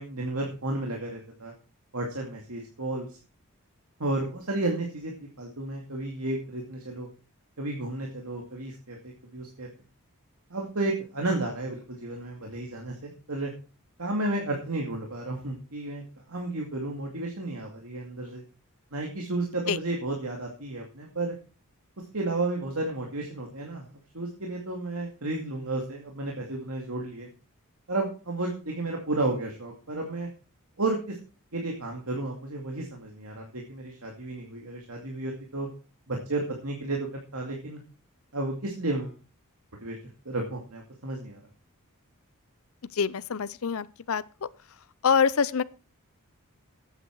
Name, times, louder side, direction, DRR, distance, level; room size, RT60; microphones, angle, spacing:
voice 1, 0.0-1.5 1.9-3.1 4.0-7.1 7.6-9.7 10.5-13.5 14.0-18.4 18.9-21.3 22.1-23.8 24.1-27.3 27.9-30.3 30.8-31.2 31.5-35.7 36.1-37.8 38.3-39.2 39.8-40.0 40.3-41.4, right 2 dB, 75° right, 2.4 m, -32 dB
voice 2, 42.9-44.5 45.0-45.6, left 6 dB, 65° left, 0.6 m, -25 dB
14.0 x 9.0 x 4.7 m
head